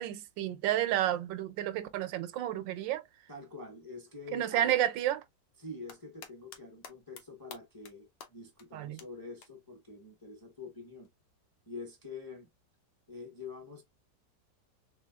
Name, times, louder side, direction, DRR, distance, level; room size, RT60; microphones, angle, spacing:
voice 1, 0.0-3.0 4.3-5.2 8.7-9.0, right 12 dB, 90° right, 1.3 m, -31 dB
voice 2, 3.3-4.7 5.6-11.1 11.7-12.5 13.1-13.8, left 3 dB, 20° left, 0.6 m, -46 dB
sound 1, 5.6-6.6 6.8-7.2 7.5-7.9 8.2-8.3 8.6-8.7 9.0-9.1 9.4-9.5 11.0-11.1, left 7 dB, 80° left, 1.4 m, -48 dB
3.4 x 3.3 x 2.2 m
omnidirectional pair, 2.0 m